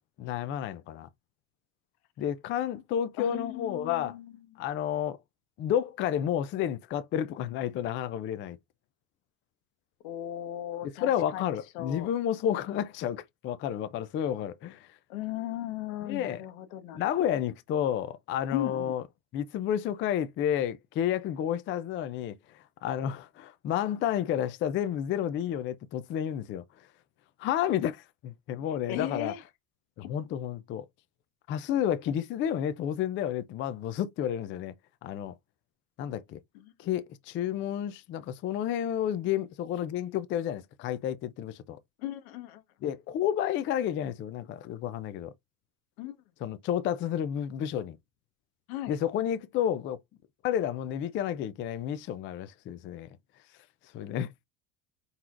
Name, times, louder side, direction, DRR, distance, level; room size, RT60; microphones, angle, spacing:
voice 1, 0.2-1.1 2.2-4.2 4.6-5.2 5.6-8.6 11.0-14.9 16.0-16.4 16.9-19.0 19.3-22.3 22.8-26.6 27.4-29.3 30.0-30.9 31.5-34.7 35.0-35.3 36.0-36.4 36.8-41.8 42.8-45.3 46.4-48.0 48.9-50.0 50.4-53.1 53.9-54.3, left 10 dB, 30° left, 0.4 m, -31 dB
voice 2, 3.2-4.6 10.0-12.1 15.1-17.1 18.5-18.9 28.9-29.4 30.0-30.1 36.5-36.7 42.0-42.6 46.0-46.2 48.7-49.0, left 13 dB, 85° left, 1.1 m, -37 dB
4.4 x 4.0 x 2.4 m
supercardioid pair, 135°, 42 cm